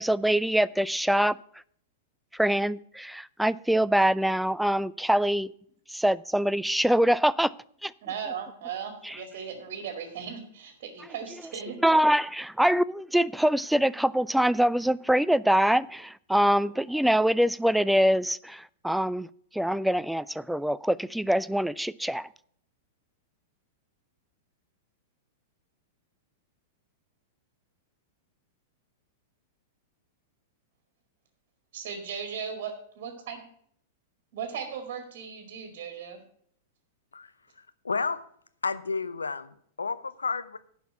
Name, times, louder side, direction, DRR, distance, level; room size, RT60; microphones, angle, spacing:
voice 1, 0.0-1.4 2.3-5.5 5.9-7.5 7.8-7.9 9.0-9.2 11.8-19.3 19.5-22.3, equal, ahead, 0.3 m, -24 dB
voice 2, 8.0-11.8 31.7-33.4 34.3-36.2, right 7 dB, 50° right, 2.1 m, -37 dB
voice 3, 37.1-38.2 38.6-40.6, left 4 dB, 80° left, 0.7 m, -32 dB
11.0 x 5.8 x 7.4 m
figure-of-eight pair, 100°, 0 cm